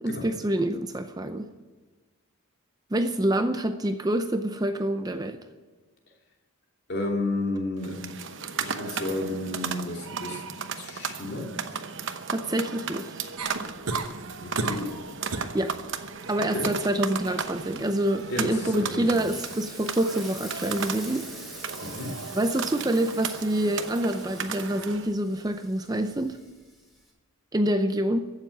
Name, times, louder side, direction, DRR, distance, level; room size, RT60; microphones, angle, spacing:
voice 1, 0.0-1.5 2.9-5.4 12.3-13.1 15.5-15.7 16.3-21.3 22.3-26.4 27.5-28.2, right 1 dB, 15° right, 8 dB, 0.5 m, -26 dB
voice 2, 6.9-8.1 8.6-10.4 10.8-11.5 14.4-14.9 16.5-16.7 18.3-19.3 21.8-22.2, left 2 dB, 45° left, 0 dB, 2.9 m, -32 dB
sound 1, 7.8-25.1, right 5 dB, 55° right, 0.9 m, -35 dB
sound 2, 13.4-14.1 14.6-14.9 15.3-15.6 16.0-16.4 18.2-18.3, right 3 dB, 90° right, 1.3 m, -32 dB
Frying (food), 17.4-27.1, equal, ahead, 3.1 m, -46 dB
15.0 x 7.3 x 9.0 m, 1.3 s
head